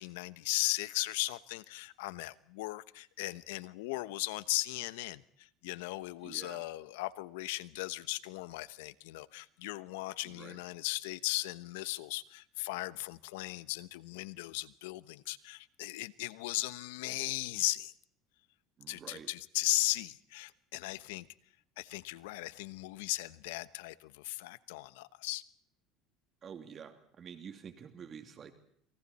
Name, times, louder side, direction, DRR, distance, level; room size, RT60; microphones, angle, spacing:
voice 1, 0.0-17.9 18.9-21.3 21.8-25.4, left 19 dB, 90° left, 16 dB, 1.0 m, -37 dB
voice 2, 6.2-6.6 10.4-10.6 18.8-19.3 26.4-28.5, right 7 dB, 40° right, 7 dB, 2.6 m, -48 dB
28.0 x 27.0 x 4.3 m, 0.67 s
supercardioid pair, 110°, 0 cm